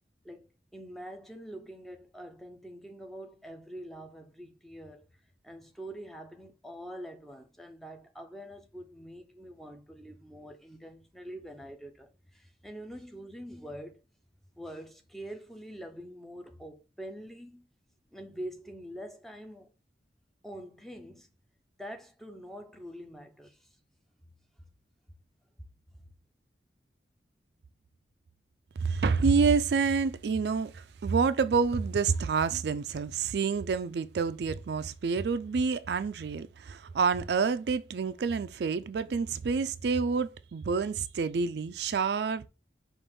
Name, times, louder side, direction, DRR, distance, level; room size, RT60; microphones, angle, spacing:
voice 1, 0.2-14.0 14.6-17.6 18.1-19.7 20.4-21.3 21.8-23.8, equal, ahead, 0.6 m, -45 dB
voice 2, 28.8-42.5, right 5 dB, 70° right, 0.4 m, -28 dB
5.2 x 2.5 x 3.5 m
head